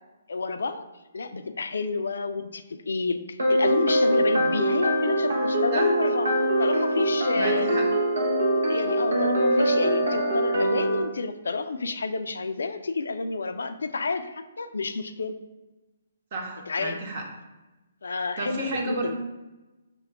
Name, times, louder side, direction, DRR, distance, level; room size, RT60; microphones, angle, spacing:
voice 1, 0.3-0.8 1.1-6.3 6.6-7.7 8.7-15.4 16.7-17.0 18.0-19.1, left 4 dB, 75° left, 9 dB, 0.3 m, -30 dB
sound 1, 3.4-11.0, right 1 dB, 80° right, 0.8 m, -23 dB
voice 2, 7.3-7.8 16.3-17.2 18.4-19.1, right 2 dB, 50° right, 0 dB, 1.0 m, -31 dB
5.8 x 2.3 x 3.4 m, 1.1 s
hypercardioid pair, 140°, 0 cm